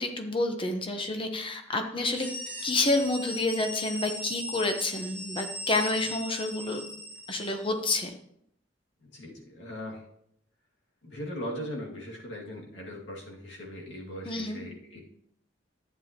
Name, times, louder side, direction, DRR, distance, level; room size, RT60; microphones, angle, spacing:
voice 1, 0.0-2.3 2.6-6.8 7.3-8.1 14.3-14.6, left 2 dB, 30° left, 5 dB, 1.1 m, -29 dB
sound 1, 2.0-7.7, left 1 dB, 10° left, 1.8 m, -38 dB
voice 2, 9.0-10.0 11.0-15.0, equal, 70° left, -2 dB, 2.2 m, -39 dB
11.5 x 9.2 x 3.0 m, 0.72 s
head